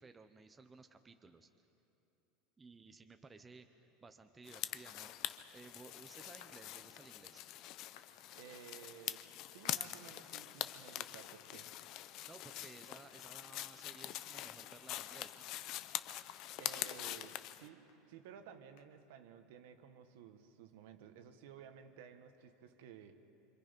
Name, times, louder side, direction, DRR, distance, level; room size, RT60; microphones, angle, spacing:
voice 1, 0.0-1.5 2.6-7.4 12.2-15.5, right 4 dB, 10° right, 7 dB, 0.6 m, -57 dB
sound 1, 4.5-17.7, left 14 dB, 40° left, 0.5 m, -44 dB
sound 2, 6.4-6.6 8.0-8.1 9.6-9.8 10.4-10.5 11.3-11.4 11.9-12.0 12.7-12.8 13.1-13.2 13.5-13.7 13.9-14.1 14.4-14.8 15.2-15.3 15.6-18.0 18.2-18.3 18.8-18.9, left 10 dB, 65° left, 1.3 m, -62 dB
voice 2, 8.3-11.7 16.6-23.2, right 8 dB, 70° right, 8 dB, 1.3 m, -55 dB
26.5 x 26.0 x 5.2 m, 2.9 s
supercardioid pair, 175°, 0 cm